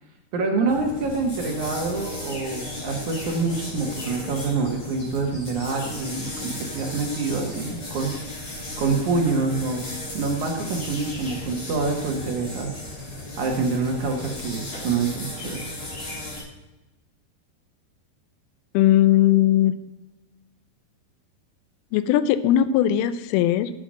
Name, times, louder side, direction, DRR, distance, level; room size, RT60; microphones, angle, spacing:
voice 1, 0.3-8.1 8.8-9.8 10.1-12.7 13.4-15.6, right 4 dB, 60° right, 1 dB, 2.2 m, -26 dB
sound 1, 0.6-16.4, left 1 dB, 40° left, 4.8 m, -35 dB
voice 2, 18.7-19.7 21.9-23.7, left 12 dB, 80° left, 13 dB, 2.4 m, -19 dB
8.7 x 7.5 x 6.2 m, 1.1 s
omnidirectional pair, 4.7 m